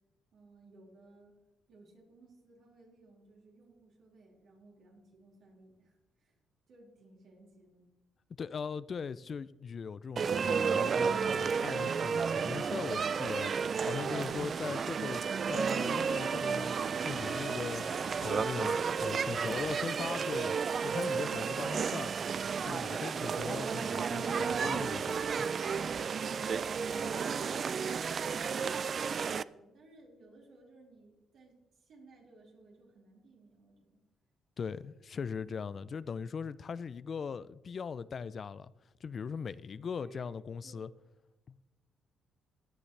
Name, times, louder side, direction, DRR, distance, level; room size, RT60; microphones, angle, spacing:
voice 1, 0.3-1.4 1.7-6.4 6.7-7.9 21.1-21.9 26.9-34.0 40.0-40.3 40.6-40.8, right 2 dB, 70° right, 4.7 m, -58 dB
voice 2, 8.4-20.6 20.8-22.1 22.6-25.5 34.6-38.7 39.0-40.9 41.5-41.6, left 6 dB, 45° left, 0.4 m, -40 dB
sound 1, 10.2-29.4, right 6 dB, 50° right, 0.3 m, -32 dB
Trumpet, 17.1-21.5, right 1 dB, 15° right, 2.1 m, -48 dB
16.5 x 9.7 x 3.3 m
cardioid pair, 90°, 0 cm